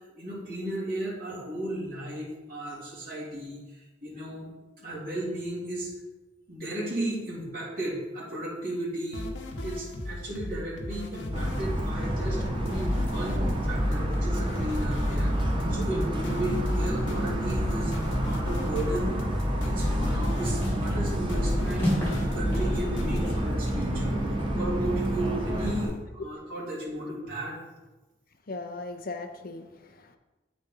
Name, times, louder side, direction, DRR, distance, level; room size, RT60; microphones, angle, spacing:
voice 1, 0.1-3.6 4.0-4.5 4.8-5.9 6.5-9.3 9.6-19.3 19.6-21.9 22.3-27.6, right 1 dB, 50° right, -6 dB, 2.7 m, -34 dB
sound 1, 9.1-23.2, left 1 dB, 85° left, 1.1 m, -37 dB
Motor vehicle (road) / Siren, 11.3-25.9, equal, 25° right, 1.1 m, -28 dB
sound 2, 20.1-20.3 20.6-21.0 21.3-22.3 22.5-23.9, left 1 dB, 10° left, 2.7 m, -33 dB
voice 2, 28.5-30.2, left 3 dB, 50° left, 6 dB, 0.7 m, -38 dB
7.8 x 4.2 x 5.4 m, 1.1 s
head